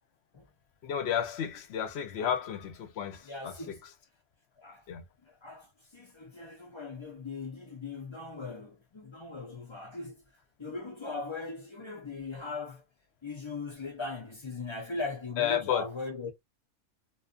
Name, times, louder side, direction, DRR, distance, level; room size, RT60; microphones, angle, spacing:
voice 1, 0.8-3.7 4.9-5.0 15.4-15.9, left 9 dB, 65° left, 0.8 m, -32 dB
voice 2, 3.2-3.8 4.6-4.8 5.3-10.2 10.6-12.8 13.2-16.3, left 3 dB, 35° left, 0.4 m, -39 dB
2.5 x 2.4 x 2.3 m
omnidirectional pair, 1.3 m